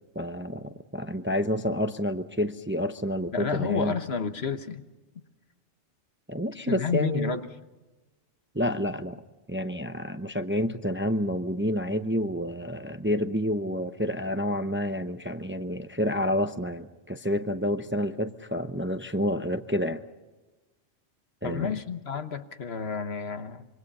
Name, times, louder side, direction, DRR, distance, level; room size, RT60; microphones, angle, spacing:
voice 1, 0.1-4.0 6.3-7.3 8.5-9.2 9.5-20.0 21.4-21.7, equal, 10° right, 0.7 m, -29 dB
voice 2, 3.3-4.8 6.7-7.5 21.4-23.7, left 6 dB, 60° left, 1.4 m, -30 dB
26.5 x 24.5 x 5.5 m
omnidirectional pair, 1.2 m